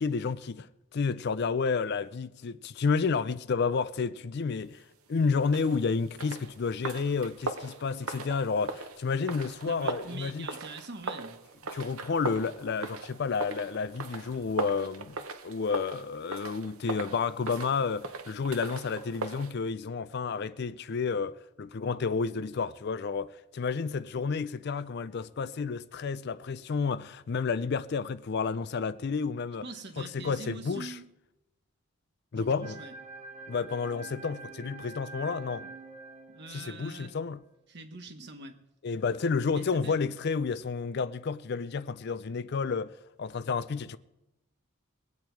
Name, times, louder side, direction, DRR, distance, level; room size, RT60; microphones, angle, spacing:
voice 1, 0.0-4.8 5.1-10.5 11.7-29.6 30.0-31.0 32.3-32.8 33.5-35.7 36.5-37.4 38.8-44.0, left 5 dB, 50° left, 0.4 m, -31 dB
sound 1, 5.4-19.5, right 3 dB, 80° right, 0.9 m, -40 dB
voice 2, 9.7-11.4 29.6-31.0 32.3-32.9 35.6-35.7 36.3-37.1 37.7-38.6 39.5-40.0, right 3 dB, 50° right, 1.2 m, -44 dB
sound 2, 32.6-37.1, right 3 dB, 30° right, 1.1 m, -46 dB
21.5 x 8.7 x 4.6 m
head